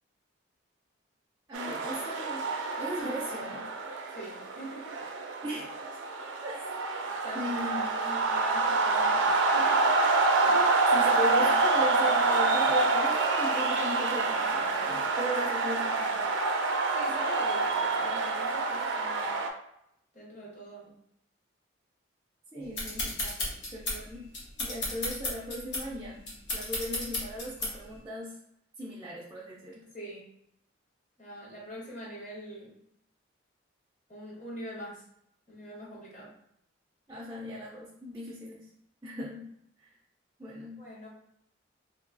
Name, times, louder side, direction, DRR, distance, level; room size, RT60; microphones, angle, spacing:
voice 1, 1.5-2.5 2.8-3.7 5.4-5.7 6.4-6.6 7.3-7.8 10.9-16.2 22.5-23.2 23.7-24.3 24.6-28.4 28.8-29.8 37.1-38.7 39.0-39.5 39.8-39.9 40.4-40.8, equal, 15° right, -5 dB, 0.4 m, -37 dB
sound 1, 1.5-19.5, right 3 dB, 85° right, 0.5 m, -27 dB
voice 2, 4.1-5.1 5.4-5.6 7.2-10.1 10.5-10.9 16.9-19.4 20.1-21.0 23.2-23.6 24.7-24.9 29.9-30.3 31.2-32.8 34.1-35.0 35.5-36.4 40.8-41.1, equal, 40° left, -5 dB, 1.1 m, -44 dB
sound 2, 22.7-28.0, left 2 dB, 60° left, 1.0 m, -34 dB
2.9 x 2.7 x 2.6 m, 0.75 s
head